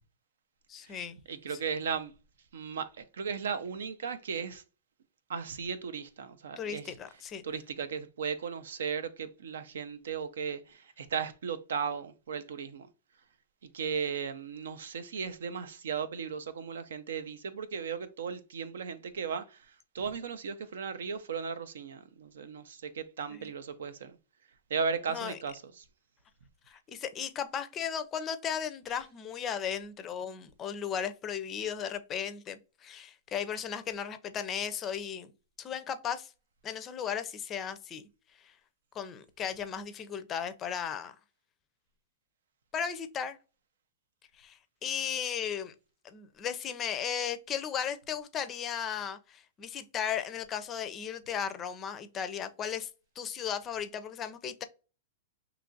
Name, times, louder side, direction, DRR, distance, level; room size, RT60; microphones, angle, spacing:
voice 1, 0.7-1.2 6.6-7.4 23.3-23.5 25.1-25.4 26.7-35.3 35.6-36.3 36.6-38.0 38.4-38.5 38.9-41.1 42.7-43.4 44.4-45.7 46.0-52.9 53.2-54.6, left 8 dB, 25° left, 0.4 m, -36 dB
voice 2, 1.3-2.1 2.5-4.6 5.3-6.8 7.4-12.9 13.6-19.7 19.9-24.2 24.7-25.8, right 6 dB, 90° right, 0.5 m, -36 dB
2.9 x 2.4 x 3.8 m
hypercardioid pair, 150°, 0 cm